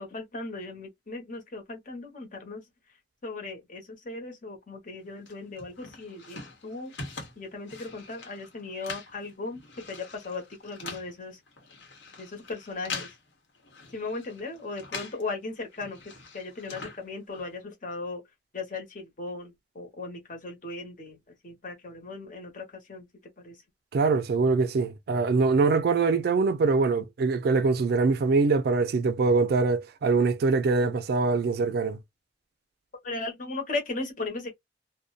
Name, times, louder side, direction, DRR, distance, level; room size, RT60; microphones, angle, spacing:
voice 1, 0.0-2.6 3.2-6.9 7.4-11.4 12.2-13.1 13.9-16.0 16.3-18.2 18.5-21.2 21.4-23.1 23.4-23.6 33.0-34.5, left 3 dB, 50° left, 1.0 m, -37 dB
sound 1, 5.3-15.3 15.6-17.6, left 4 dB, 90° left, 1.0 m, -43 dB
voice 2, 23.9-32.0, right 4 dB, 60° right, 0.4 m, -23 dB
2.6 x 2.1 x 2.4 m
head